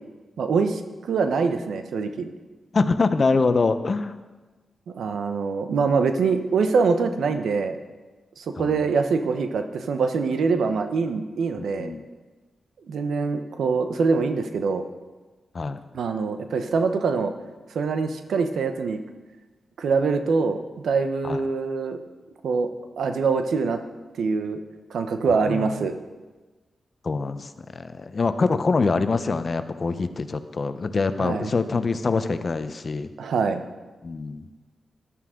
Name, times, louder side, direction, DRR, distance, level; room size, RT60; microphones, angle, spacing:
voice 1, 0.4-0.8 1.1-2.3 4.9-7.8 8.4-11.9 12.9-14.8 15.9-17.3 17.7-19.0 19.8-20.6 20.8-22.0 22.4-22.7 23.0-23.8 24.2-24.6 24.9-25.9 31.2-31.5 33.2-33.6, right 4 dB, 85° right, 8 dB, 0.9 m, -24 dB
voice 2, 2.7-4.1 8.6-8.8 11.8-12.0 15.5-15.8 21.2-21.4 25.3-25.7 27.0-33.1 34.0-34.4, left 4 dB, 55° left, 11 dB, 0.8 m, -24 dB
13.5 x 11.5 x 3.8 m, 1.2 s
cardioid pair, 50°, 0 cm